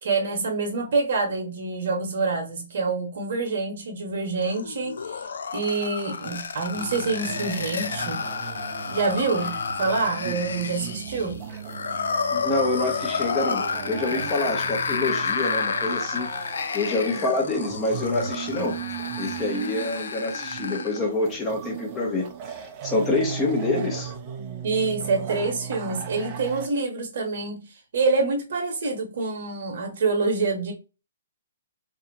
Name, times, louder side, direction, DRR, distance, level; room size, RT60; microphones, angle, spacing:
voice 1, 0.0-5.2 5.5-8.2 8.8-11.4 24.6-27.6 27.9-30.7, right 3 dB, 60° right, 1.0 m, -26 dB
sound 1, 4.4-21.0, left 5 dB, 70° left, 0.3 m, -31 dB
sound 2, 6.7-26.7, right 7 dB, 35° right, 0.5 m, -37 dB
voice 2, 12.3-16.3 16.7-18.8 19.2-24.1, left 2 dB, 20° left, 0.8 m, -27 dB
2.7 x 2.4 x 2.5 m
hypercardioid pair, 135°, 0 cm